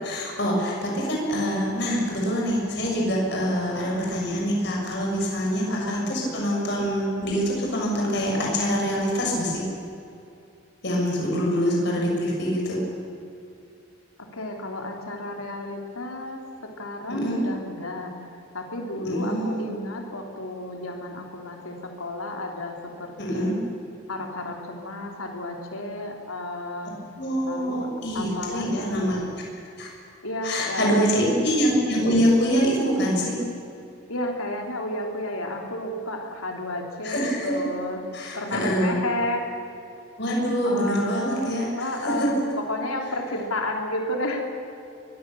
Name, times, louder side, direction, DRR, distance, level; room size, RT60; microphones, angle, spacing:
voice 1, 0.0-9.6 10.8-12.8 17.1-17.4 19.0-19.6 23.2-23.6 27.2-29.2 29.8-29.9 30.4-33.4 37.0-37.6 38.1-39.0 40.2-42.4, equal, 50° left, -2 dB, 6.4 m, -25 dB
voice 2, 5.7-6.1 14.2-16.4 16.8-18.1 18.5-23.5 24.1-27.0 27.5-27.9 28.1-29.3 30.2-31.1 34.1-38.0 38.3-39.4 40.6-44.4, left 1 dB, 85° left, 2 dB, 3.3 m, -32 dB
23.5 x 23.0 x 7.0 m, 2.6 s
head